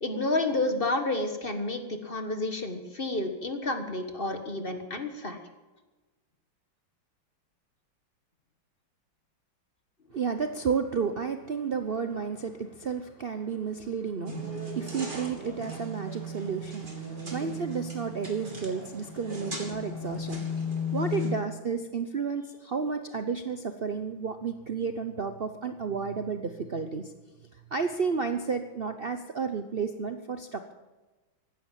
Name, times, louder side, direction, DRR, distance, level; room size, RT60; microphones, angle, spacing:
voice 1, 0.0-5.4, left 2 dB, 30° left, 6 dB, 1.5 m, -30 dB
voice 2, 10.1-20.6 20.9-27.1 27.7-30.7, right 5 dB, 90° right, 8 dB, 0.5 m, -32 dB
sound 1, 14.3-21.3, left 2 dB, 25° right, 3.0 m, -36 dB
15.5 x 12.0 x 7.5 m, 1.2 s
omnidirectional pair, 2.2 m